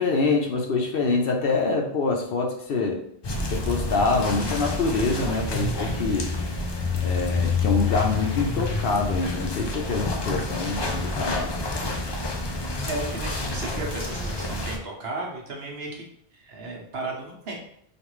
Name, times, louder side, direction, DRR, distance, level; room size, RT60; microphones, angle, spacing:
voice 1, 0.0-3.0 3.5-6.3 7.0-11.5, left 4 dB, 60° left, 2 dB, 0.8 m, -25 dB
sound 1, 3.2-14.8, left 3 dB, 45° left, 0.3 m, -28 dB
voice 2, 12.7-16.0 16.3-17.5, right 2 dB, 65° right, -1 dB, 1.1 m, -34 dB
5.1 x 2.4 x 3.1 m, 0.69 s
omnidirectional pair, 1.1 m